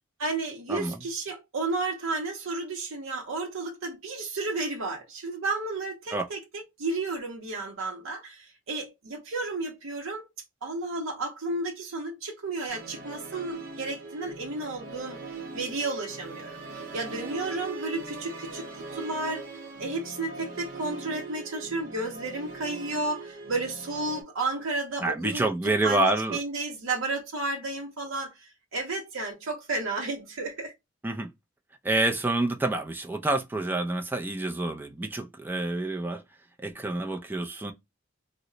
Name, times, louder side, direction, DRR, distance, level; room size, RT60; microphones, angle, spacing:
voice 1, 0.2-10.2 10.6-25.5 25.8-30.7, right 3 dB, 70° right, 0.7 m, -32 dB
Musical instrument, 12.7-24.2, right 3 dB, 45° right, 0.9 m, -41 dB
voice 2, 25.0-26.4 31.0-31.3 31.8-36.2 36.6-37.7, right 2 dB, 10° right, 0.4 m, -28 dB
2.9 x 2.1 x 3.7 m
head